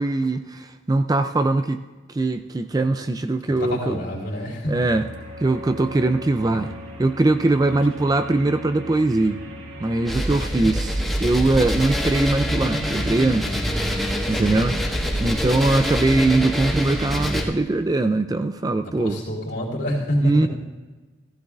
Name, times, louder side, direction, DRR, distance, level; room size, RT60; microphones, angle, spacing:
voice 1, 0.0-1.8 2.1-4.0 4.7-5.1 5.4-6.7 7.0-9.4 9.8-13.6 14.3-14.8 15.2-19.2 20.2-20.5, right 2 dB, 20° right, 9 dB, 0.3 m, -21 dB
voice 2, 3.5-4.7 10.3-10.7 14.3-14.8 19.0-20.5, equal, 60° left, -2 dB, 3.2 m, -27 dB
sound 1, 4.8-10.1, left 1 dB, 75° right, 1.7 m, -38 dB
sound 2, 10.0-17.4, equal, ahead, 1.3 m, -25 dB
16.0 x 15.0 x 2.4 m, 1.2 s
head